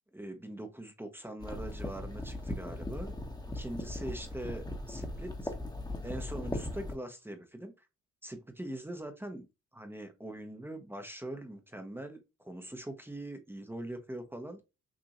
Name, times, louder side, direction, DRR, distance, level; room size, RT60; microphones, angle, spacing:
voice 1, 0.1-3.2 3.5-5.5 6.0-7.9 8.2-9.5 9.7-14.6, right 1 dB, 5° right, 0.9 m, -42 dB
sound 1, 1.4-6.9, left 1 dB, 15° left, 1.2 m, -38 dB
6.3 x 2.7 x 3.0 m
cardioid pair, 90°, 30 cm